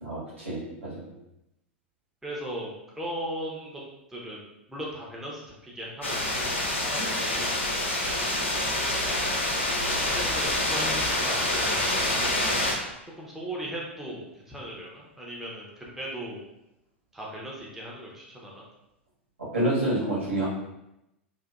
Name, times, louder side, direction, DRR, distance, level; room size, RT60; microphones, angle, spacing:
voice 1, 0.0-1.0 19.5-20.5, right 1 dB, 75° right, -7 dB, 1.1 m, -28 dB
voice 2, 2.2-3.7 4.1-7.7 8.0-8.4 8.9-9.3 10.1-11.8 12.2-12.4 13.0-16.4 17.1-18.6, right 1 dB, 5° right, -4 dB, 0.5 m, -38 dB
sound 1, 6.0-12.7, left 1 dB, 75° left, 0.5 m, -27 dB
2.6 x 2.1 x 2.3 m, 0.88 s
figure-of-eight pair, 90°, 7 cm